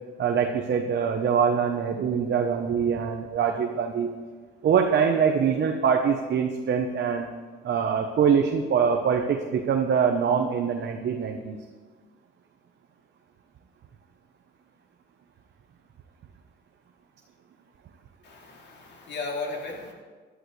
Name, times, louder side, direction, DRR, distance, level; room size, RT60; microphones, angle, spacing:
voice 1, 0.2-4.1 4.6-7.3 7.6-11.6, right 7 dB, 60° right, 3 dB, 1.0 m, -24 dB
voice 2, 18.2-19.9, left 3 dB, 60° left, -1 dB, 3.0 m, -35 dB
16.0 x 11.5 x 3.3 m, 1.4 s
cardioid pair, 90°, 20 cm